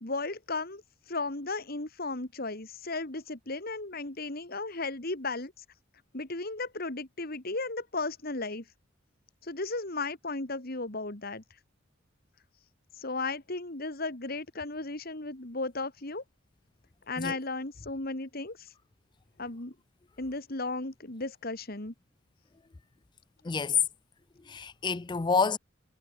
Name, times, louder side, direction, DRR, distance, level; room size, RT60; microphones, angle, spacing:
voice 1, 0.0-5.6 6.1-8.6 9.4-11.4 13.0-16.2 17.1-18.7 19.4-19.7 20.2-21.9, left 3 dB, 50° left, 2.4 m, -35 dB
voice 2, 23.4-23.8 24.5-25.6, left 5 dB, 25° left, 0.4 m, -28 dB
head